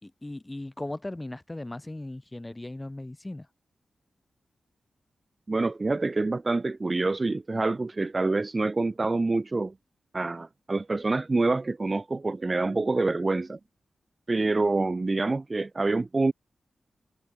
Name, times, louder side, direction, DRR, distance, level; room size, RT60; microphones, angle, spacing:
voice 1, 0.0-3.5, left 1 dB, 20° left, 3.9 m, -38 dB
voice 2, 5.5-9.7 10.1-13.6 14.3-16.3, right 3 dB, 35° right, 1.0 m, -26 dB
cardioid pair, 75°, 0 cm